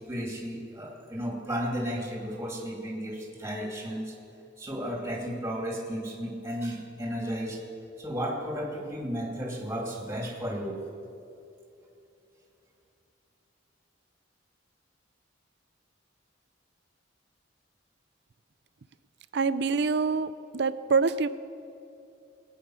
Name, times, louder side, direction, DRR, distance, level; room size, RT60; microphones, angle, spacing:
voice 1, 0.0-4.1 4.6-7.6 8.0-10.8, equal, 15° right, -1 dB, 2.5 m, -34 dB
voice 2, 19.3-21.3, right 4 dB, 60° right, 15 dB, 0.5 m, -26 dB
20.5 x 9.1 x 6.3 m, 2.7 s
head